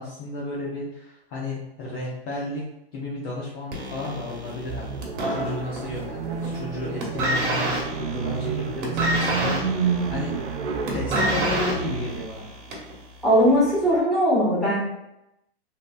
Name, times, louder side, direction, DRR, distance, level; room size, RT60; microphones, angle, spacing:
voice 1, 0.0-2.6 2.9-5.0 5.3-10.3 10.9-12.5, left 2 dB, 35° left, -5 dB, 0.6 m, -33 dB
sound 1, 3.7-6.0 6.3-6.7 7.0-13.0 13.8-13.9, right 1 dB, 50° right, 1.1 m, -28 dB
sound 2, 4.6-12.3, right 5 dB, 85° right, 0.6 m, -30 dB
voice 2, 13.2-14.8, equal, ahead, -9 dB, 1.3 m, -19 dB
3.2 x 2.8 x 2.2 m, 0.85 s
hypercardioid pair, 130°, 32 cm